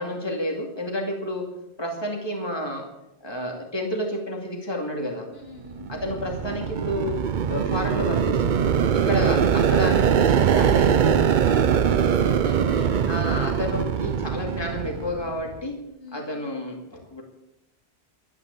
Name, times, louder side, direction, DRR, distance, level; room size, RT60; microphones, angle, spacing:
voice 1, 0.0-1.5 1.8-2.9 3.2-5.3 5.9-7.2 7.5-11.3 13.1-15.8 16.1-17.2, left 1 dB, 25° left, 1 dB, 2.5 m, -30 dB
voice 2, 5.3-6.0 8.8-9.2 11.2-13.2 16.0-16.3, left 1 dB, 65° left, 0 dB, 3.1 m, -41 dB
sound 1, 5.7-15.5, right 7 dB, 55° right, 0.7 m, -22 dB
12.5 x 9.6 x 8.2 m, 0.86 s
omnidirectional pair, 1.1 m